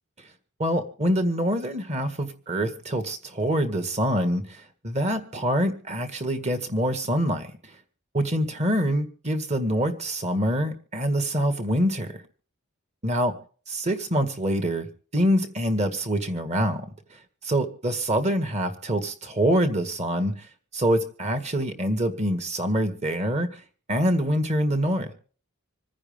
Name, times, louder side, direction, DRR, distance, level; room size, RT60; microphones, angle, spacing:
voice 1, 0.6-7.7 8.1-12.1 13.0-13.3 13.7-14.9 15.1-16.9 17.4-20.5 20.7-23.6 23.9-25.1, equal, 30° right, 7 dB, 1.9 m, -25 dB
26.5 x 9.8 x 3.7 m, 0.42 s
head